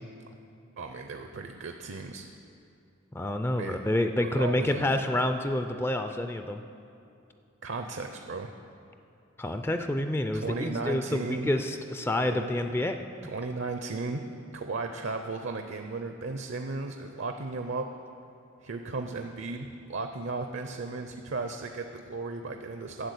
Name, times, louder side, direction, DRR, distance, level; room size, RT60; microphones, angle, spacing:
voice 1, 0.8-2.3 3.6-3.8 4.2-4.9 7.6-8.5 10.3-11.5 12.3-12.6 13.2-14.2 14.5-17.9 18.6-23.1, right 3 dB, 60° right, 5 dB, 0.6 m, -35 dB
voice 2, 3.1-6.6 9.4-13.0, left 1 dB, 10° left, 7 dB, 0.3 m, -28 dB
10.5 x 7.2 x 8.3 m, 2.6 s
head